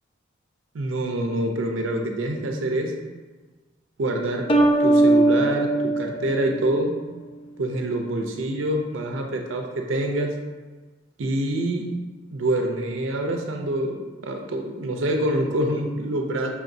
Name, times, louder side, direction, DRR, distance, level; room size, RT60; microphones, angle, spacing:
voice 1, 0.7-2.9 4.0-4.5 4.8-6.9 7.6-10.3 11.2-11.9 12.3-14.0 14.2-16.5, right 1 dB, 80° right, 2 dB, 0.5 m, -26 dB
sound 1, 4.5-7.1, right 2 dB, 30° left, 0.4 m, -20 dB
5.8 x 3.5 x 2.6 m, 1.3 s
head